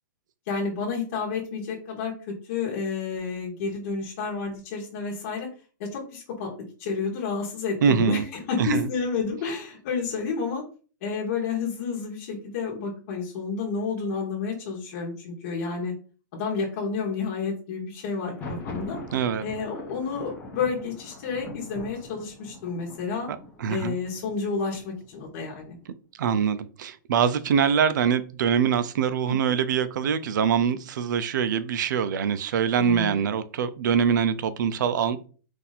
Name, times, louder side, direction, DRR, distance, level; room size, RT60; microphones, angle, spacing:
voice 1, 0.5-5.5 5.8-6.5 6.8-10.6 11.0-15.9 16.3-19.0 19.4-23.3 23.7-25.8 29.2-29.4 32.8-33.2, left 5 dB, 45° left, 1.2 m, -30 dB
voice 2, 7.8-8.2 8.6-8.9 19.1-19.4 23.6-24.0 26.2-35.3, right 7 dB, 65° right, 0.5 m, -24 dB
Thunder, 18.1-25.9, left 2 dB, 15° left, 0.8 m, -42 dB
4.2 x 2.6 x 4.1 m
supercardioid pair, 170°, 11 cm